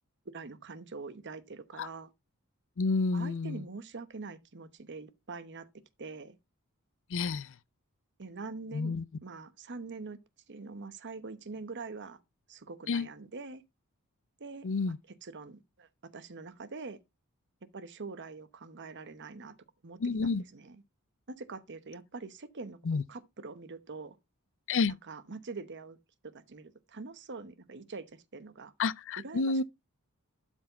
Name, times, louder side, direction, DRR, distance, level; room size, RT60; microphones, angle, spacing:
voice 1, 0.3-2.1 3.1-5.7 6.0-6.4 8.2-8.9 9.2-10.2 10.5-12.2 12.5-13.6 14.4-14.9 15.2-17.0 17.7-19.5 19.8-20.8 21.3-22.8 23.1-24.2 25.1-26.0 26.3-28.7 29.2-29.6, right 4 dB, 55° right, 0.9 m, -44 dB
voice 2, 2.8-3.6 7.1-7.6 8.7-9.0 12.9-13.1 14.6-15.0 20.0-20.5 22.8-23.0 24.7-24.9 28.8-29.6, left 4 dB, 60° left, 0.5 m, -30 dB
12.0 x 4.5 x 4.1 m
head